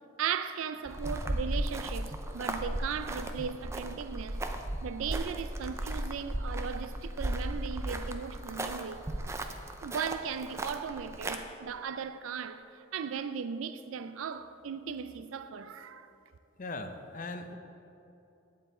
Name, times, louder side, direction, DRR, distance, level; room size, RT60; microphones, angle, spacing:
voice 1, 0.2-4.4 4.8-9.1 9.8-16.1, right 7 dB, 85° right, 0.4 m, -37 dB
sound 1, 0.9-11.4, right 1 dB, 15° right, 0.4 m, -35 dB
voice 2, 16.6-17.6, left 2 dB, 40° left, 0.6 m, -39 dB
9.9 x 7.6 x 4.3 m
head